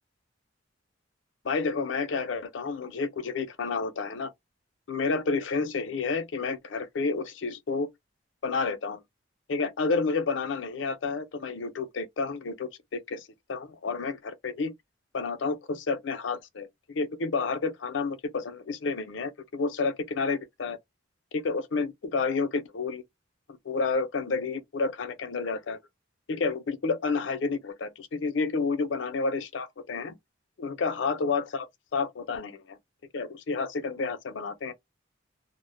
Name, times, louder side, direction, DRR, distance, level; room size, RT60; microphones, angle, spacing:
voice 1, 1.4-4.3 4.9-7.9 8.4-9.0 9.5-14.7 15.1-20.8 21.3-23.0 23.5-25.8 26.3-30.2 30.6-31.7 31.9-32.8 33.1-34.7, left 4 dB, 75° left, 0.5 m, -30 dB
2.0 x 2.0 x 3.1 m
head